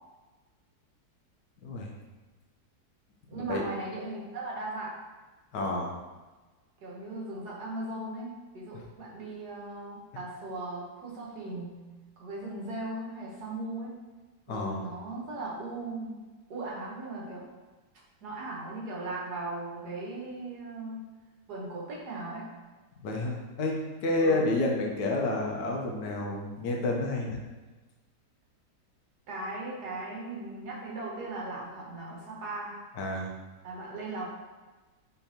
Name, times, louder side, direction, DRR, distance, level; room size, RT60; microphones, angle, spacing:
voice 1, 1.6-1.9 3.3-3.6 5.5-5.9 8.7-8.8 14.5-14.8 23.0-27.4 33.0-33.3, left 2 dB, 85° left, 0 dB, 1.5 m, -30 dB
voice 2, 3.3-5.0 6.8-11.9 12.2-14.0 14.5-16.2 16.5-17.5 18.2-21.0 21.5-22.5 24.2-24.4 29.3-32.8 33.6-34.3, right 2 dB, 70° right, -4 dB, 1.6 m, -38 dB
5.5 x 3.4 x 2.8 m, 1.2 s
omnidirectional pair, 1.8 m